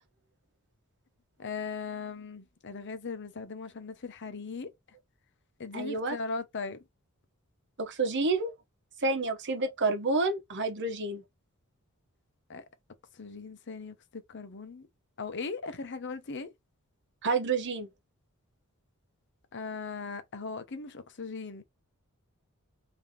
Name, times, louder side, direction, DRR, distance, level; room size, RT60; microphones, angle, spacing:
voice 1, 1.4-4.7 5.6-6.8 12.5-12.6 13.2-14.9 15.2-16.5 19.5-21.6, left 4 dB, 55° left, 0.8 m, -38 dB
voice 2, 5.7-6.2 7.8-8.5 9.0-11.2 17.2-17.9, right 3 dB, 55° right, 1.0 m, -29 dB
3.5 x 2.9 x 3.6 m
head